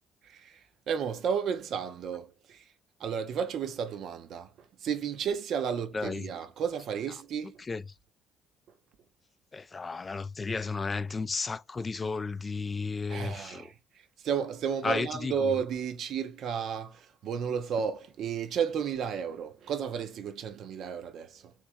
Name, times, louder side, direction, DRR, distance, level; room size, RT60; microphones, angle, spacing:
voice 1, 0.2-2.7 3.0-7.6 13.1-21.5, right 7 dB, 60° right, 0.5 m, -33 dB
voice 2, 5.9-6.2 7.7-7.8 9.5-13.7 14.8-15.3, left 4 dB, 30° left, 0.3 m, -33 dB
3.1 x 3.0 x 3.3 m
hypercardioid pair, 50°, 0 cm